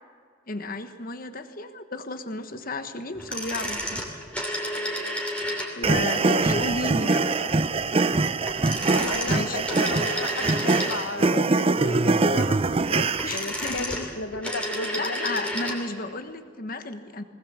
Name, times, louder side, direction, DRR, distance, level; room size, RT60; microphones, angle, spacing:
voice 1, 0.5-4.2 5.7-7.3 9.3-9.7 13.2-14.2 15.0-17.2, left 2 dB, 50° left, 9 dB, 1.3 m, -33 dB
sound 1, 3.1-6.0 8.4-11.3 13.0-16.1, equal, 5° left, 3.0 m, -31 dB
sound 2, 5.8-13.4, right 3 dB, 30° right, 0.5 m, -23 dB
voice 2, 5.9-6.4 7.0-7.1 7.4-7.5 8.9-15.3, left 2 dB, 80° left, 11 dB, 1.2 m, -34 dB
20.0 x 19.0 x 7.4 m, 2.1 s
head